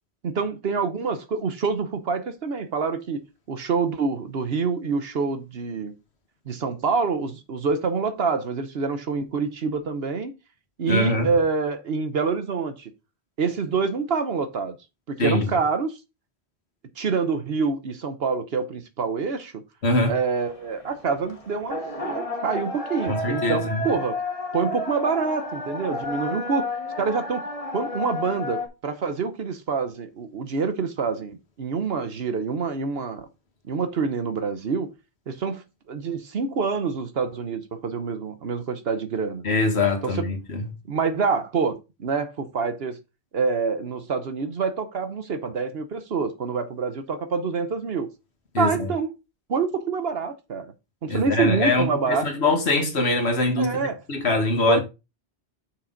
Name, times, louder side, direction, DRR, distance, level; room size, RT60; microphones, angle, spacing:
voice 1, 0.2-3.2 3.5-5.9 6.5-10.3 10.8-12.9 13.4-14.7 15.1-16.0 17.0-19.6 20.1-24.2 24.5-26.7 27.0-27.5 27.7-33.3 33.7-34.9 35.3-39.5 40.0-40.3 40.9-43.0 43.3-48.1 48.6-49.1 49.5-50.7 51.0-52.3 53.6-54.0 54.7-54.8, right 5 dB, 70° right, 1.1 m, -26 dB
voice 2, 10.9-11.3 15.2-15.5 19.8-20.1 23.1-23.8 39.4-40.7 48.5-48.9 51.1-54.8, left 2 dB, 80° left, 1.9 m, -23 dB
sound 1, 20.1-28.7, left 2 dB, 35° left, 1.7 m, -32 dB
6.5 x 5.7 x 3.9 m
omnidirectional pair, 1.1 m